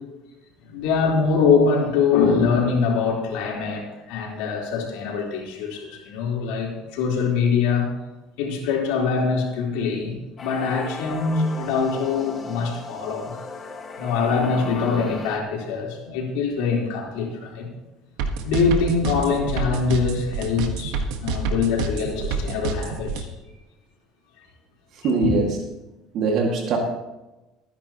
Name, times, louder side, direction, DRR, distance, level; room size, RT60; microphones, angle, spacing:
voice 1, 0.6-7.9 8.4-13.3 14.0-17.7 18.4-23.3 25.2-25.3, left 5 dB, 85° left, -2 dB, 3.9 m, -23 dB
sound 1, 10.4-15.4, left 3 dB, 30° left, 1.6 m, -37 dB
sound 2, 18.2-23.2, right 6 dB, 85° right, 1.5 m, -27 dB
voice 2, 24.9-25.6 26.1-26.8, right 4 dB, 60° right, 1 dB, 2.1 m, -22 dB
22.0 x 10.5 x 3.0 m, 1.0 s
cardioid pair, 125°, 0 cm